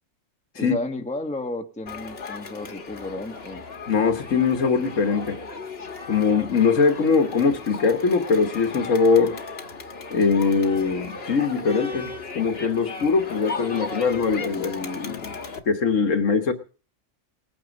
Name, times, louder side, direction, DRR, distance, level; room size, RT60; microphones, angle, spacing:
voice 1, 0.5-3.6, left 2 dB, 5° left, 4 dB, 1.2 m, -32 dB
Crowd, 1.9-15.6, left 3 dB, 45° left, 1.6 m, -36 dB
voice 2, 3.9-5.4 6.1-9.3 10.1-15.4 15.7-16.5, left 5 dB, 65° left, 7 dB, 1.6 m, -22 dB
19.5 x 9.0 x 5.3 m, 0.38 s
omnidirectional pair, 1.4 m